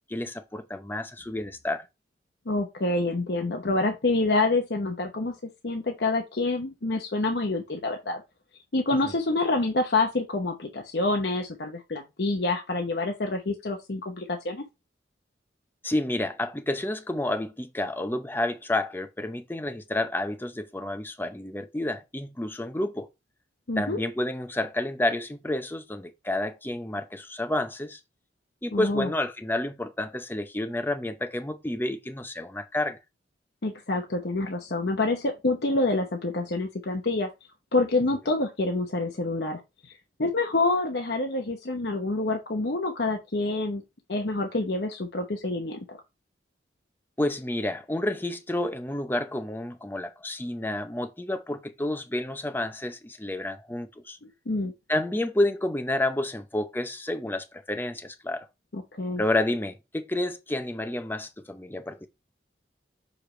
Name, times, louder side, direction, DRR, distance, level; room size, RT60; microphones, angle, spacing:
voice 1, 0.1-1.8 9.0-9.1 15.8-23.1 23.8-28.0 28.6-33.0 47.2-54.2 54.9-58.5 59.2-62.1, left 1 dB, 10° left, 0.6 m, -30 dB
voice 2, 2.5-5.3 5.6-8.2 8.7-14.6 23.7-24.0 28.7-29.1 33.6-37.3 37.7-39.9 40.2-43.8 44.1-46.0 54.2-54.7 58.7-59.2, left 2 dB, 65° left, 0.9 m, -27 dB
6.5 x 5.0 x 3.2 m
head